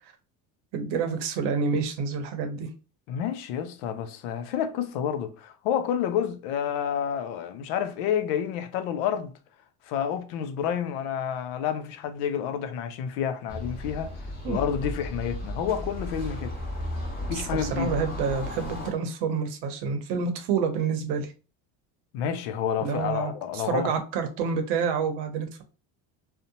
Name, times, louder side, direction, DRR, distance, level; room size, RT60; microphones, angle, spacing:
voice 1, 0.7-2.7 14.4-14.6 17.3-21.3 22.8-25.6, right 6 dB, 70° right, 0.8 m, -28 dB
voice 2, 3.1-9.3 9.9-14.1 14.5-16.5 17.3-17.9 22.1-23.9, left 8 dB, 85° left, 0.6 m, -29 dB
sound 1, 13.5-18.9, left 1 dB, 20° left, 1.1 m, -35 dB
2.7 x 2.1 x 2.6 m
supercardioid pair, 100°, 42 cm